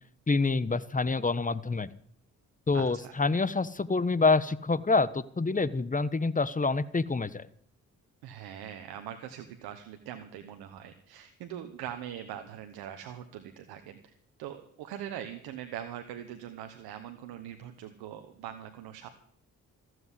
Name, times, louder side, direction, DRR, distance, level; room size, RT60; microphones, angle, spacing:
voice 1, 0.3-1.9 2.7-7.5, left 3 dB, 20° left, 18 dB, 1.0 m, -27 dB
voice 2, 2.7-3.1 8.2-14.0 14.4-19.1, right 10 dB, 90° right, 7 dB, 1.1 m, -42 dB
14.5 x 7.9 x 9.8 m, 0.63 s
supercardioid pair, 50°, 37 cm